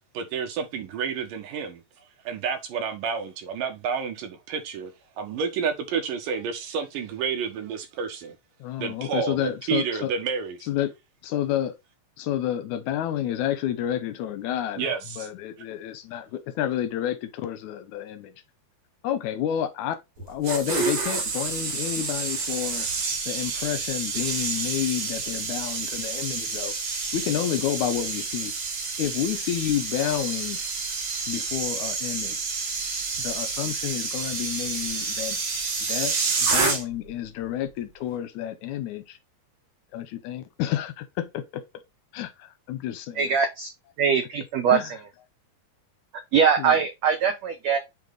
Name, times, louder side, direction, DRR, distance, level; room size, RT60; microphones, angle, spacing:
voice 1, 0.1-1.8 2.2-4.9 5.2-8.4 8.8-10.7 14.8-15.3, right 6 dB, 70° right, 2.7 m, -30 dB
voice 2, 8.6-10.1 10.7-10.9 11.2-11.8 12.2-14.9 15.2-18.3 19.0-22.9 23.2-26.7 27.1-28.5 29.0-30.6 31.3-32.6 33.2-35.4 35.9-36.1 36.4-39.2 39.9-41.6 42.1-43.4 44.7-44.9 46.6-46.8, left 11 dB, 75° left, 1.8 m, -30 dB
sound 1, 20.2-37.1 37.4-37.7, right 4 dB, 55° right, 3.3 m, -29 dB
voice 3, 43.2-43.7 44.0-44.8 46.3-47.8, right 7 dB, 90° right, 1.5 m, -22 dB
8.8 x 3.3 x 3.9 m
omnidirectional pair, 4.4 m